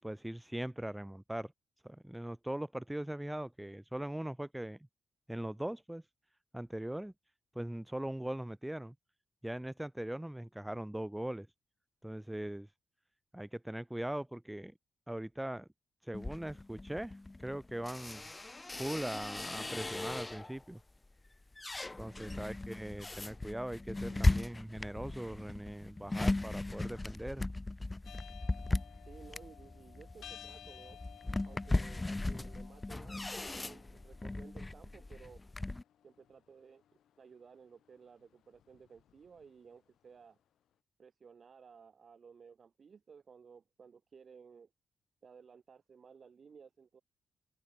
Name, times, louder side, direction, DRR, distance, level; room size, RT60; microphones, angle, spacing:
voice 1, 0.0-1.5 1.8-4.8 5.3-6.0 6.5-7.1 7.5-8.9 9.4-11.5 12.0-12.7 13.3-14.7 15.1-15.7 16.0-18.3 18.7-20.8 22.0-27.5, right 1 dB, 5° right, 4.4 m, -40 dB
sound 1, 16.1-20.6 21.1-35.8, left 2 dB, 15° left, 1.2 m, -37 dB
voice 2, 22.2-22.5 24.1-24.5 29.0-31.0 31.5-35.4 36.0-36.8 37.2-40.4 41.0-44.7 45.2-47.0, right 6 dB, 45° right, 6.1 m, -56 dB
sound 2, 28.0-40.2, left 10 dB, 80° left, 7.5 m, -57 dB
cardioid pair, 130°, 0 cm